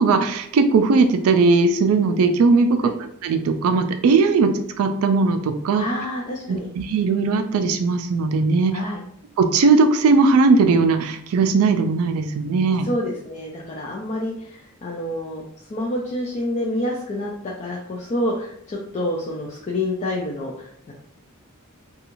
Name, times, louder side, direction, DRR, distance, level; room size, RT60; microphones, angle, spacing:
voice 1, 0.0-2.9 3.2-4.5 4.8-5.9 6.5-8.7 9.4-12.9, right 4 dB, 70° right, 7 dB, 0.3 m, -18 dB
voice 2, 5.8-6.7 8.7-9.0 12.8-15.4 15.7-20.9, left 1 dB, 30° left, -3 dB, 0.3 m, -28 dB
2.5 x 2.3 x 2.9 m, 0.70 s
head